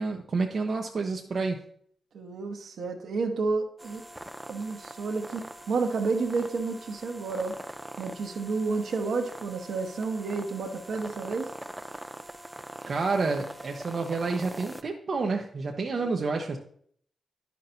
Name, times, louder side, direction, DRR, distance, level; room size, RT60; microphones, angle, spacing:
voice 1, 0.0-1.6 12.8-16.6, right 4 dB, 60° right, 1 dB, 0.7 m, -29 dB
voice 2, 2.1-4.0 4.5-7.6 8.0-11.5 16.0-16.1, right 4 dB, 75° right, 3 dB, 1.0 m, -30 dB
sound 1, 3.8-14.8, right 1 dB, 15° right, 0.5 m, -43 dB
10.0 x 5.8 x 2.6 m, 0.63 s
cardioid pair, 50°, 0 cm